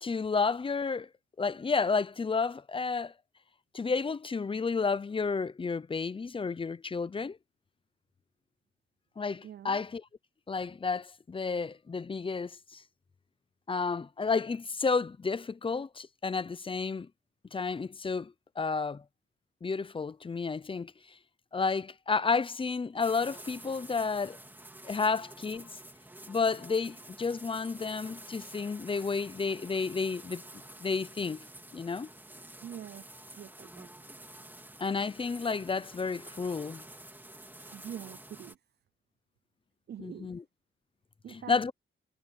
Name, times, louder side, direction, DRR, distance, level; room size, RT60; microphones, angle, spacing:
voice 1, 0.0-1.1 1.4-3.1 3.7-7.4 9.2-10.0 10.5-12.8 13.7-17.1 17.5-19.0 19.6-21.2 21.5-24.4 24.8-25.7 26.3-32.1 34.8-36.9 40.0-40.4 41.3-41.7, left 4 dB, 25° left, 0.7 m, -31 dB
voice 2, 9.4-9.8 32.6-33.0 33.4-33.9 37.7-38.6 39.9-40.3 41.2-41.7, right 9 dB, 55° right, 0.5 m, -44 dB
sound 1, 23.0-38.5, right 1 dB, 10° right, 2.1 m, -49 dB
cardioid pair, 105°, 21 cm